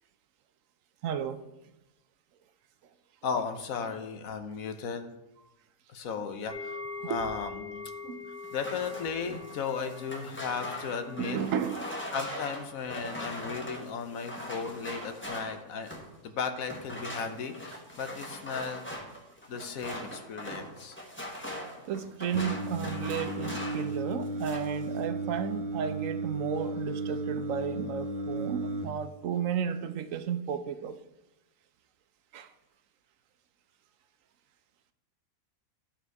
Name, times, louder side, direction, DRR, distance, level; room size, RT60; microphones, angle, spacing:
voice 1, 1.0-1.4 7.0-7.2 8.0-8.3 11.2-11.9 21.0-21.1 21.9-31.0 32.3-32.5, right 8 dB, 70° right, 10 dB, 1.0 m, -33 dB
voice 2, 3.2-5.1 5.9-6.8 7.0-7.9 8.5-11.4 12.1-15.9 16.2-18.8 19.5-21.0, left 5 dB, 80° left, 7 dB, 1.2 m, -35 dB
sound 1, 6.5-15.6 15.9-16.1 16.6-16.7, left 4 dB, 35° right, 1.1 m, -45 dB
sound 2, 8.4-16.2 16.7-23.9 24.2-24.8, equal, 10° left, 1.1 m, -41 dB
Singing, 22.3-28.9, right 2 dB, 55° right, 0.4 m, -34 dB
12.0 x 4.4 x 4.6 m, 0.95 s
omnidirectional pair, 1.4 m